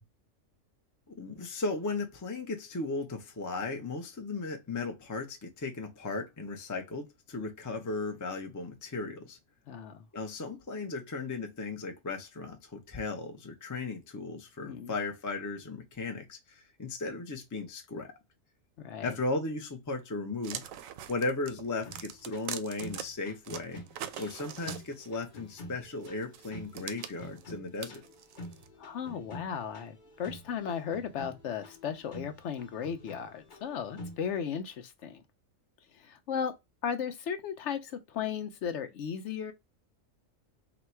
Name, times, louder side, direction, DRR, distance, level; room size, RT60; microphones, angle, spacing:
voice 1, 1.1-9.4 10.1-18.1 19.0-20.6 21.1-23.8 24.2-28.0, left 3 dB, 20° left, 0.5 m, -36 dB
voice 2, 9.7-10.0 14.6-14.9 18.8-19.1 28.8-35.2 36.0-36.6 36.8-39.5, left 7 dB, 70° left, 0.8 m, -36 dB
sound 1, 20.4-23.0 23.5-25.2 26.0-28.7, right 9 dB, 85° right, 1.0 m, -42 dB
sound 2, 21.8-34.4, left 1 dB, 40° left, 1.0 m, -48 dB
4.0 x 2.2 x 4.3 m
omnidirectional pair, 1.4 m